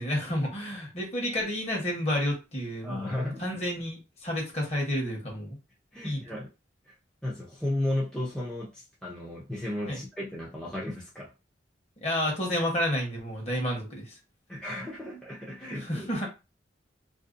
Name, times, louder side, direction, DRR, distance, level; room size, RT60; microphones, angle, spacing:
voice 1, 0.0-3.1 3.4-5.6 6.0-6.2 9.9-10.0 12.0-14.1 15.8-16.3, equal, 35° left, 1.0 m, -30 dB
voice 2, 2.8-3.5 5.9-6.5 6.9-7.0 7.2-11.3 14.5-16.1, left 1 dB, 5° left, 0.5 m, -34 dB
2.6 x 2.1 x 2.5 m
head